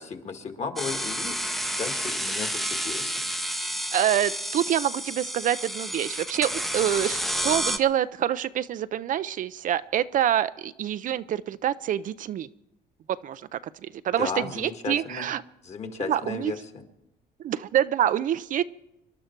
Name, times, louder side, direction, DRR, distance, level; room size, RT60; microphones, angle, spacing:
voice 1, 0.0-1.4 1.8-3.1 14.2-15.3 15.6-16.8, left 5 dB, 40° left, 6 dB, 1.9 m, -34 dB
sound 1, 0.8-7.8, equal, ahead, 0.7 m, -30 dB
voice 2, 3.9-12.5 13.2-15.4 15.8-16.5 17.4-18.6, right 10 dB, 50° right, 14 dB, 0.5 m, -26 dB
26.0 x 11.5 x 4.5 m, 0.90 s
cardioid pair, 110°, 17 cm